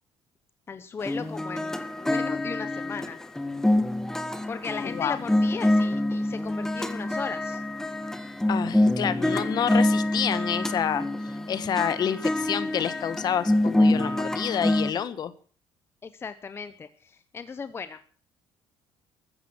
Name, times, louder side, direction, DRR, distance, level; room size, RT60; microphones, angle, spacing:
voice 1, 0.7-3.2 4.5-7.6 9.2-9.4 16.0-18.0, left 5 dB, 25° left, 11 dB, 0.8 m, -37 dB
sound 1, 1.0-14.9, left 1 dB, 5° left, 1.3 m, -26 dB
voice 2, 8.5-11.1 11.5-15.3, left 8 dB, 45° left, 14 dB, 1.3 m, -28 dB
15.0 x 14.0 x 6.2 m, 0.42 s
cardioid pair, 135°, 9 cm